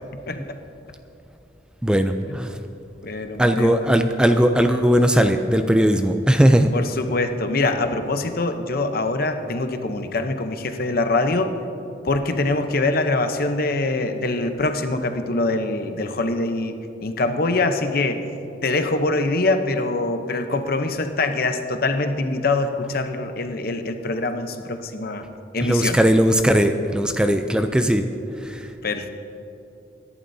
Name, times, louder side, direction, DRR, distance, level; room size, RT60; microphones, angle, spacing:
voice 1, 0.3-0.6 3.0-3.7 6.7-11.5 12.0-16.7 17.0-18.2 18.6-25.2 25.5-26.0 28.8-29.1, left 2 dB, 55° left, 7 dB, 0.8 m, -24 dB
voice 2, 1.8-2.6 3.4-6.7 25.6-28.1 28.4-28.7, equal, 5° right, 7 dB, 0.4 m, -18 dB
22.5 x 11.0 x 2.7 m, 2.9 s
head